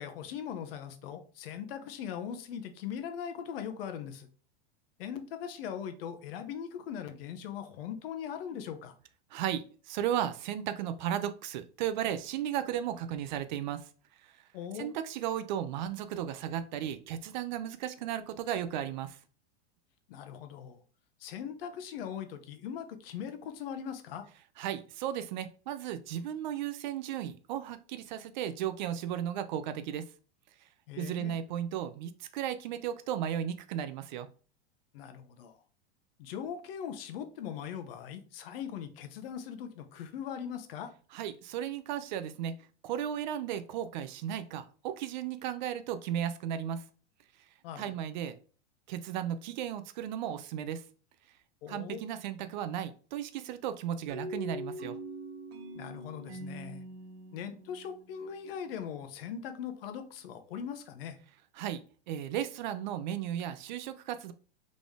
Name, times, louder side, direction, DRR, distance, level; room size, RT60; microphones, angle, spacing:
voice 1, 0.0-4.3 5.0-8.9 14.5-14.9 20.1-20.8 21.2-24.2 30.9-31.4 34.9-35.6 36.2-40.9 47.6-47.9 51.6-52.0 55.7-56.8 57.3-61.2, left 8 dB, 60° left, 9 dB, 0.8 m, -40 dB
voice 2, 9.3-13.9 14.2-14.3 14.7-19.2 24.6-30.1 31.0-34.3 41.1-42.6 42.8-46.8 47.8-48.4 48.9-50.8 51.7-55.0 61.6-61.8 62.1-64.3, right 10 dB, 45° right, 11 dB, 0.4 m, -35 dB
sound 1, 54.1-58.8, equal, 65° right, 1.3 m, -43 dB
3.9 x 3.6 x 3.5 m, 0.39 s
supercardioid pair, 155°, 33 cm